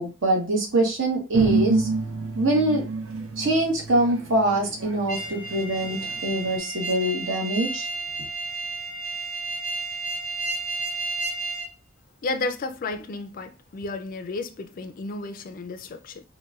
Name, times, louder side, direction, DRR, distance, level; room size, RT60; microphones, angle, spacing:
voice 1, 0.0-1.9 2.3-2.8 3.4-7.9, right 1 dB, 65° right, 1.0 m, -24 dB
sound 1, 1.3-6.6, right 4 dB, 85° right, 0.6 m, -28 dB
sound 2, 5.1-11.7, right 3 dB, 20° right, 1.1 m, -32 dB
voice 2, 12.2-16.2, left 3 dB, 40° left, 0.3 m, -32 dB
3.9 x 2.2 x 2.3 m
head